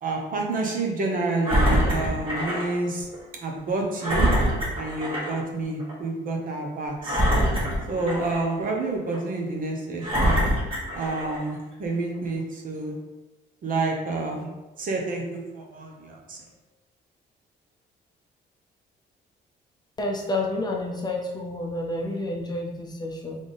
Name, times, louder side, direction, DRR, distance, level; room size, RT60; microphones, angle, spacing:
voice 1, 0.0-3.1 3.4-4.3 4.8-7.2 7.9-10.4 10.9-13.0 13.6-14.5 14.8-16.4, right 2 dB, 50° right, 0 dB, 0.9 m, -29 dB
Engine, 1.4-2.7 3.1-3.2 4.0-5.4 5.8-5.9 7.0-8.5 9.1-9.2 10.0-11.5 12.2-12.3, equal, 30° right, 1.4 m, -24 dB
voice 2, 20.0-23.4, left 2 dB, 20° left, 0 dB, 0.6 m, -29 dB
3.5 x 3.5 x 4.0 m, 1.1 s
cardioid pair, 135°, 18 cm